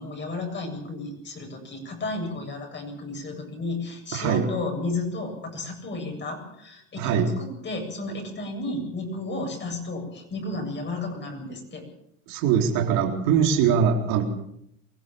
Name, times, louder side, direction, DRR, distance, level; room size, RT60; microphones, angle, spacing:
voice 1, 0.0-11.8, left 2 dB, 30° left, 3 dB, 8.0 m, -33 dB
voice 2, 4.1-4.4 7.0-7.3 12.3-14.2, right 7 dB, 65° right, 2 dB, 3.9 m, -22 dB
23.0 x 16.0 x 7.1 m, 0.72 s
supercardioid pair, 110°, 37 cm